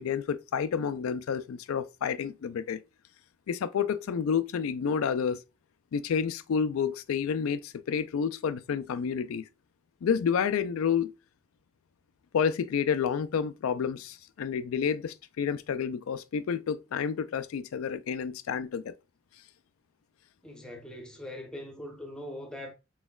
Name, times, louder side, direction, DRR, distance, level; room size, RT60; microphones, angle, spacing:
voice 1, 0.0-2.8 3.5-5.4 5.9-9.5 10.0-11.1 12.3-18.9, left 7 dB, 85° left, 0.3 m, -29 dB
voice 2, 20.4-22.7, left 1 dB, 5° left, 0.7 m, -41 dB
4.1 x 3.9 x 2.3 m
head